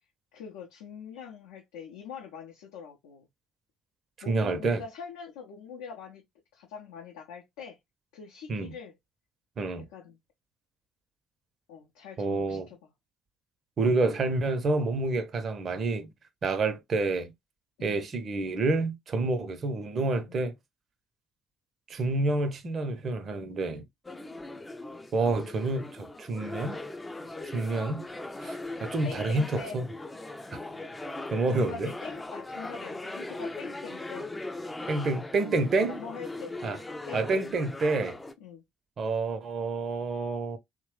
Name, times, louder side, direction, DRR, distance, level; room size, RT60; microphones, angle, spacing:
voice 1, 0.3-3.3 4.2-6.2 6.5-7.8 8.1-9.0 9.8-10.2 11.7-12.9 17.8-18.0 19.5-19.6 20.3-20.5 29.0-29.8 31.5-34.3 35.9-37.5 38.4-38.6, left 6 dB, 65° left, 0.5 m, -43 dB
voice 2, 4.3-4.8 8.5-8.7 9.6-9.9 12.2-12.7 13.8-16.1 16.4-17.3 17.8-20.5 21.9-23.8 25.1-26.8 27.5-28.0 28.4-29.8 30.5-30.6 31.3-31.9 34.9-36.0 36.6-36.8 37.1-38.2 39.0-40.6, right 3 dB, 45° right, 0.6 m, -28 dB
sound 1, 24.0-38.3, left 2 dB, 20° left, 0.4 m, -39 dB
2.9 x 2.0 x 3.1 m
figure-of-eight pair, 50°, 0 cm